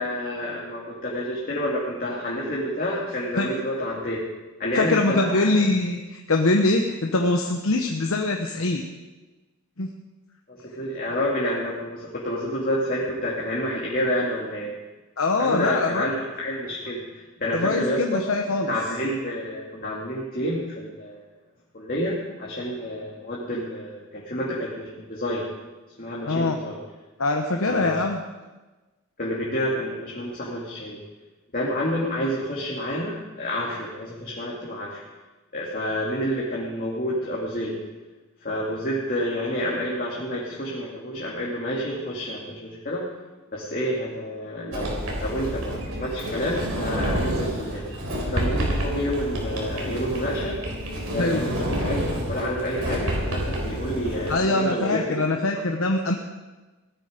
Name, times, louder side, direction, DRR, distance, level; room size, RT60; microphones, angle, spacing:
voice 1, 0.0-4.2 4.6-5.6 10.5-14.7 15.4-18.2 18.6-21.2 21.7-25.5 26.0-26.8 27.6-28.0 29.2-31.0 31.5-35.0 35.5-37.8 38.4-43.1 43.5-47.9 48.3-50.6 51.1-55.6, equal, 40° left, -5 dB, 2.4 m, -29 dB
voice 2, 4.7-8.8 9.8-9.9 15.2-16.0 17.5-18.7 26.3-26.6 27.2-28.2 51.2-51.5 54.3-56.1, left 2 dB, 70° left, 3 dB, 1.1 m, -23 dB
Sliding door, 44.7-54.4, equal, 75° right, 3.9 m, -28 dB
17.5 x 12.5 x 5.1 m, 1.2 s
head